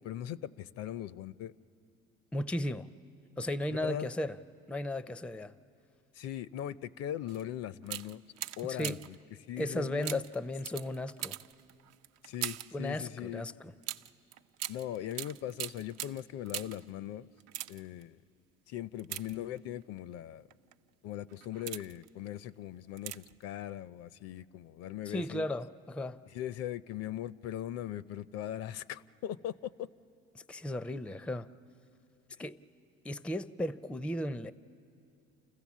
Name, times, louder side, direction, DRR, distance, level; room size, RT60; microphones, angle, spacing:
voice 1, 0.0-1.5 3.7-4.1 6.1-8.2 8.6-9.2 9.5-10.2 12.2-13.5 14.7-17.3 17.7-18.2 18.7-20.5 21.0-25.5 26.3-29.9, left 11 dB, 60° left, 0.5 m, -40 dB
voice 2, 2.3-2.9 3.4-4.4 4.7-5.5 8.7-9.0 9.6-11.4 12.7-13.7 25.1-26.2 30.3-31.5 32.4-32.6 33.0-34.5, left 1 dB, 5° left, 0.4 m, -35 dB
sound 1, 7.3-7.4 7.8-9.2 10.0-12.8 13.8-16.9 17.4-18.0 19.0-19.8 20.5-20.7 21.3-22.1 23.0-23.4 23.7-23.8, right 13 dB, 60° right, 0.5 m, -41 dB
29.0 x 15.0 x 7.3 m
supercardioid pair, 85°, 29 cm